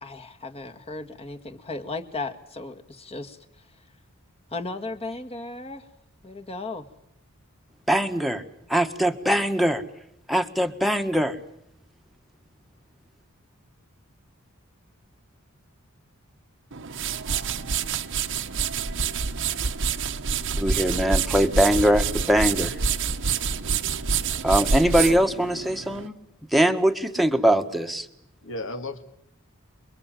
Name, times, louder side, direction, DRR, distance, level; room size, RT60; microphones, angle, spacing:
voice 1, 0.0-3.4 4.5-5.8 6.2-6.9, left 3 dB, 30° left, 1.9 m, -35 dB
voice 2, 7.9-8.4 8.7-9.8 10.3-11.4 20.6-22.8 24.4-26.2 26.5-28.1, equal, ahead, 1.4 m, -22 dB
sound 1, 16.7-26.1, right 5 dB, 60° right, 1.1 m, -27 dB
voice 3, 24.8-25.2 28.4-29.0, left 2 dB, 65° left, 2.2 m, -35 dB
29.0 x 23.0 x 7.7 m
head